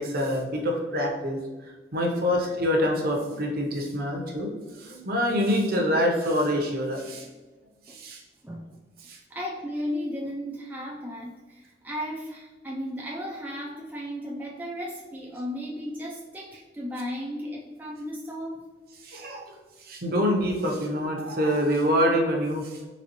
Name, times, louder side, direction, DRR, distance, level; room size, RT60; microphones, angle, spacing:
voice 1, 0.0-1.4 1.9-4.5 4.8-7.3 7.9-8.2 9.0-9.2 19.0-19.4 19.8-22.8, equal, 55° right, 1 dB, 0.7 m, -26 dB
voice 2, 8.4-18.6, equal, 10° right, -2 dB, 0.3 m, -35 dB
4.1 x 3.0 x 2.9 m, 1.2 s
head